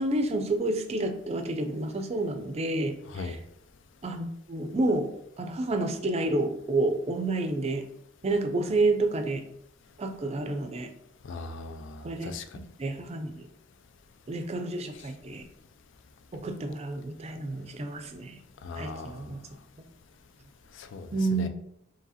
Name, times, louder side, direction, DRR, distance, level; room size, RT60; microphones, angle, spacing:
voice 1, 0.0-3.4 4.0-5.1 5.4-7.8 8.2-9.4 10.0-10.9 12.0-13.5 14.3-15.4 16.3-18.4 18.8-19.4 21.1-21.5, right 2 dB, 35° right, 7 dB, 0.4 m, -29 dB
voice 2, 11.3-12.4 18.6-19.3 20.7-21.5, left 4 dB, 70° left, 8 dB, 0.4 m, -39 dB
4.8 x 2.8 x 2.8 m, 0.79 s
head